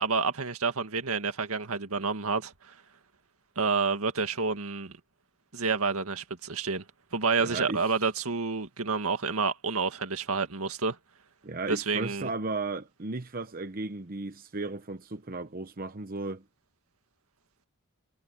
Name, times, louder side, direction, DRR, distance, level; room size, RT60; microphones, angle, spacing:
voice 1, 0.0-2.7 3.6-5.0 5.5-6.8 7.1-11.0 11.7-12.3, right 4 dB, 80° right, 1.9 m, -29 dB
voice 2, 7.4-7.8 11.4-16.4, right 3 dB, 40° right, 0.9 m, -35 dB
head